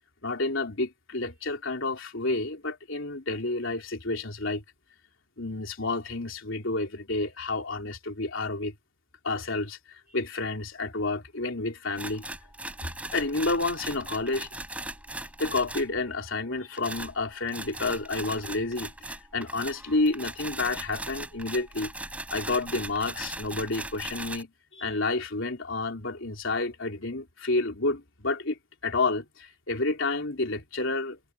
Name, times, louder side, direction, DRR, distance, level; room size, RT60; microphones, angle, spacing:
voice 1, 0.2-4.6 5.4-8.7 9.2-9.8 10.1-12.2 13.1-14.5 15.4-21.9 22.3-31.2, left 3 dB, 70° left, 3.4 m, -30 dB
sound 1, 12.0-16.0 16.8-24.4, right 1 dB, 5° right, 6.0 m, -38 dB
head